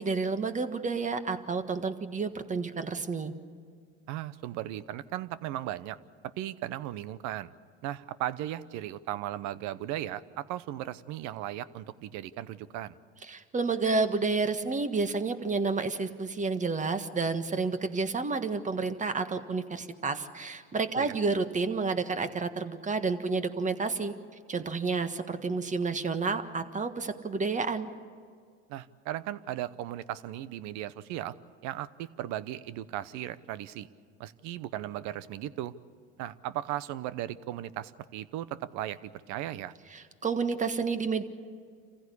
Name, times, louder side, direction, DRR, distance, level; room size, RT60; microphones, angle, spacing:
voice 1, 0.0-3.3 13.3-24.1 24.5-27.9 39.9-41.2, right 4 dB, 25° right, 9 dB, 1.5 m, -30 dB
voice 2, 4.1-6.0 6.2-7.5 7.8-12.9 21.0-21.1 28.7-31.3 31.6-33.9 34.2-35.7 36.2-39.7, right 13 dB, 60° right, 17 dB, 0.9 m, -36 dB
27.0 x 15.5 x 8.4 m, 2.1 s
hypercardioid pair, 85°, 32 cm